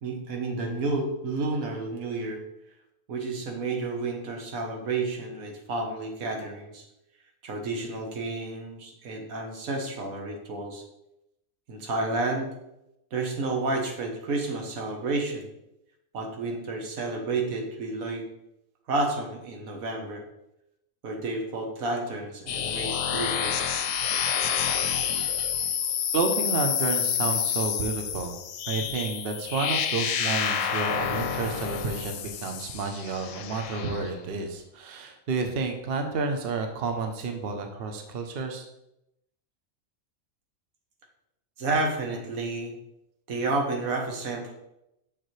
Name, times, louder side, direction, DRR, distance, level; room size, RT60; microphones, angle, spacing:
voice 1, 0.0-2.4 3.1-6.8 7.4-10.8 11.7-12.5 13.1-15.5 16.1-18.3 18.9-20.2 21.0-23.8 41.6-42.7 43.3-44.5, right 3 dB, 80° right, 2 dB, 1.5 m, -30 dB
sound 1, 22.5-34.1, left 8 dB, 70° left, 0.9 m, -29 dB
voice 2, 26.1-28.4 28.7-38.7, right 4 dB, 50° right, 5 dB, 0.9 m, -30 dB
6.9 x 5.9 x 3.2 m, 0.84 s
omnidirectional pair, 1.4 m